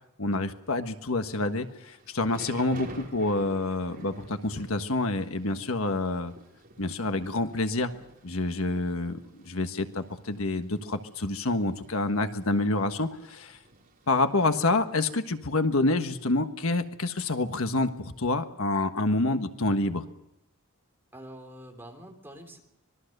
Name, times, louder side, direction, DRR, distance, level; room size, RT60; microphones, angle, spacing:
voice 1, 0.2-6.3 6.8-7.9 8.2-9.2 9.5-13.6 14.1-20.0, left 2 dB, 75° left, 8 dB, 1.4 m, -27 dB
Thunder / Rain, 1.6-14.6, right 2 dB, 40° right, 4.7 m, -51 dB
voice 2, 21.1-22.6, right 1 dB, 10° right, 3 dB, 3.6 m, -46 dB
26.0 x 21.0 x 6.7 m, 0.83 s
head